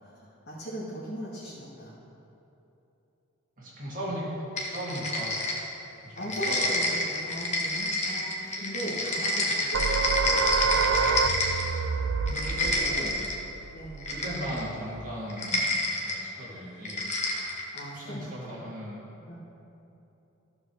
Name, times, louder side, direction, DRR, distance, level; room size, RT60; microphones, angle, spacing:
voice 1, 0.0-2.0 6.2-10.8 12.3-12.7 13.7-14.0 17.3-17.4 17.7-18.6 19.3-19.4, right 1 dB, 50° left, -7 dB, 1.6 m, -39 dB
voice 2, 3.6-5.5 6.0-7.0 11.2-11.6 12.3-13.2 14.1-15.7 16.0-17.1 17.9-19.1, equal, 40° right, -6 dB, 2.1 m, -37 dB
sound 1, 4.6-5.9 6.2-11.8 12.2-13.4 14.0-14.7 15.3-16.2 16.8-17.9, left 1 dB, 35° left, 1.2 m, -29 dB
sound 2, 9.7-15.0, right 5 dB, 75° right, 0.4 m, -28 dB
14.0 x 4.8 x 6.3 m, 3.0 s
head